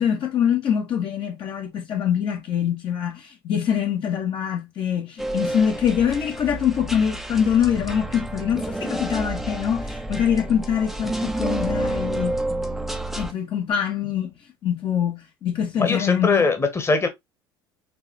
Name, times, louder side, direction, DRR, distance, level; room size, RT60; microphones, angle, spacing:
voice 1, 0.0-12.4 13.2-14.3 14.6-16.5, left 8 dB, 45° left, 1.2 m, -24 dB
sound 1, 5.2-13.3, right 1 dB, ahead, 0.7 m, -29 dB
voice 2, 15.8-17.1, left 4 dB, 20° left, 1.3 m, -21 dB
4.7 x 3.2 x 3.0 m
figure-of-eight pair, 65°, 12 cm